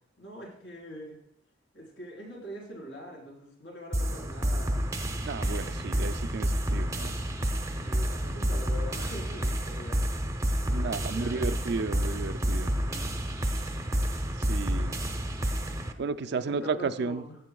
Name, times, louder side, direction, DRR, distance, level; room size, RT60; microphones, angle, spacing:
voice 1, 0.2-1.2 1.7-4.9 7.8-10.1 10.7-13.1 16.2-17.4, equal, 75° left, -2 dB, 4.3 m, -44 dB
sound 1, 3.9-15.9, equal, 15° right, 0.7 m, -29 dB
voice 2, 5.2-7.1 10.7-12.7 14.5-15.0 16.0-17.2, right 4 dB, 60° right, 12 dB, 0.4 m, -33 dB
14.0 x 8.2 x 2.3 m, 0.72 s
head